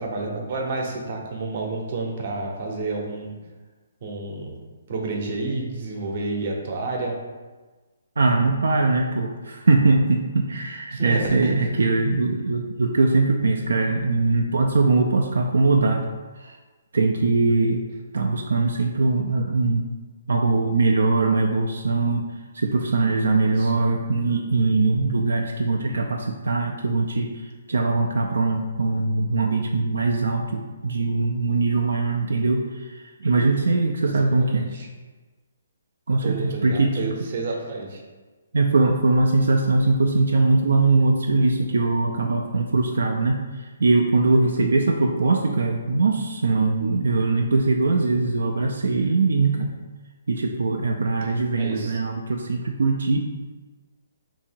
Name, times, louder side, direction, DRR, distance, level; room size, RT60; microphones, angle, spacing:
voice 1, 0.0-3.3 4.0-4.6 4.9-7.2 10.9-11.7 23.4-24.0 34.1-34.9 36.2-38.0 51.6-52.0, right 3 dB, 45° right, 0 dB, 0.7 m, -30 dB
voice 2, 8.2-16.1 16.4-16.6 16.9-17.8 18.1-19.9 20.3-22.3 22.5-34.7 36.1-37.1 38.5-49.7 50.3-53.3, right 3 dB, 85° right, 1 dB, 0.3 m, -21 dB
2.8 x 2.7 x 4.3 m, 1.3 s
hypercardioid pair, 155°, 0 cm